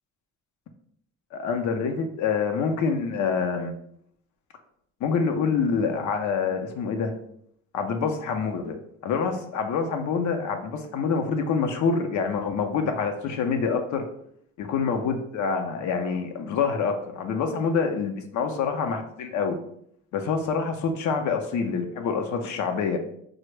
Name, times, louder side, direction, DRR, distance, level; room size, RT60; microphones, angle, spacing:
voice 1, 1.3-3.7 5.0-7.1 7.7-8.8 9.0-14.0 14.6-19.6 20.1-23.0, left 5 dB, 70° left, 5 dB, 0.5 m, -26 dB
3.5 x 2.0 x 3.2 m, 0.70 s
cardioid pair, 90°, 30 cm